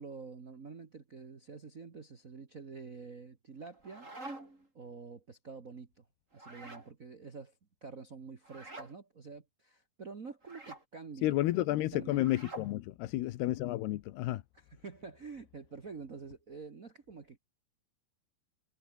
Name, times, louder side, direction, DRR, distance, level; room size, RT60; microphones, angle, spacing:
voice 1, 0.0-4.1 4.7-6.0 6.3-7.5 7.8-11.4 11.9-12.2 14.8-17.4, right 5 dB, 65° right, 0.8 m, -47 dB
sound 1, 3.6-4.7 6.3-6.9 8.4-8.9 10.4-10.8 12.1-12.7, right 2 dB, 20° right, 5.8 m, -47 dB
voice 2, 11.2-14.4, left 16 dB, 80° left, 3.1 m, -31 dB
omnidirectional pair, 4.6 m